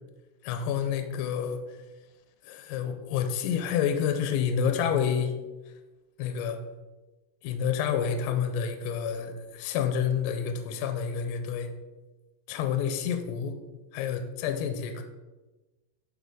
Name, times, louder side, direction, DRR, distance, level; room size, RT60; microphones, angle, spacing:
voice 1, 0.4-1.6 2.4-5.3 6.2-6.6 7.4-11.7 12.5-13.6 13.9-15.0, left 7 dB, 80° left, 6 dB, 2.6 m, -29 dB
11.5 x 4.0 x 3.6 m, 1.1 s
omnidirectional pair, 5.1 m